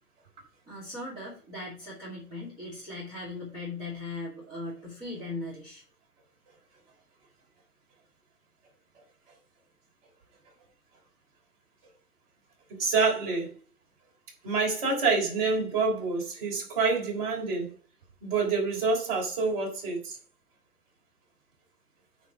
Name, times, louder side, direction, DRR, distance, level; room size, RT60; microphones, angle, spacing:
voice 1, 0.7-5.8, left 2 dB, 10° right, 2.3 m, -39 dB
voice 2, 12.8-13.5 14.4-17.7 18.2-20.2, right 4 dB, 35° right, 3.6 m, -27 dB
9.5 x 3.6 x 6.1 m
hypercardioid pair, 165°, 47 cm